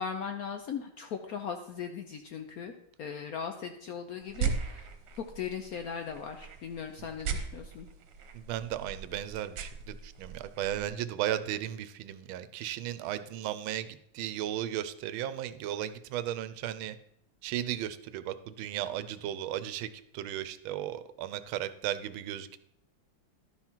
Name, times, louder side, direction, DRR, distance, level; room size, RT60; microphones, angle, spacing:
voice 1, 0.0-2.7 3.0-4.9 5.2-7.9, left 7 dB, 70° left, 6 dB, 0.8 m, -38 dB
sound 1, 4.2-10.9, right 6 dB, 65° right, 1.5 m, -38 dB
voice 2, 8.3-17.0 17.4-22.6, right 11 dB, 90° right, 13 dB, 1.4 m, -35 dB
11.5 x 5.7 x 4.4 m, 0.76 s
omnidirectional pair, 2.2 m